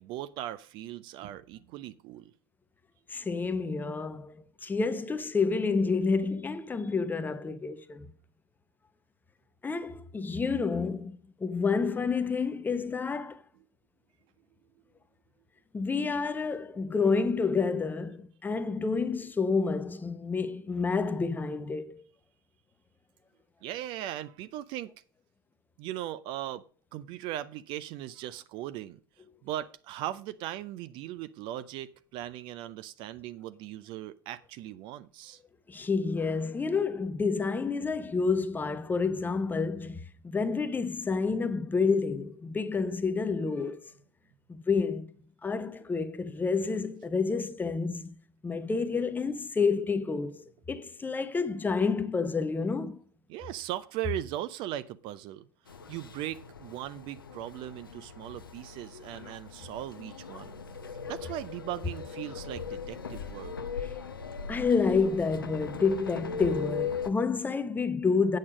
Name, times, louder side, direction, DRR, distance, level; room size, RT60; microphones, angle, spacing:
voice 1, 0.0-2.3 23.6-24.9 25.8-26.7 26.9-29.0 29.4-35.4 53.3-55.5 55.9-60.6 61.1-63.5, right 13 dB, 45° right, 0.5 m, -38 dB
voice 2, 3.1-8.1 9.6-13.4 15.7-22.0 35.7-43.8 44.5-45.1 45.4-48.1 48.4-53.0 64.5-68.4, left 4 dB, 15° left, 0.9 m, -29 dB
sound 1, 55.7-67.1, left 6 dB, 80° left, 0.7 m, -39 dB
8.5 x 6.5 x 5.0 m
figure-of-eight pair, 75°, 12 cm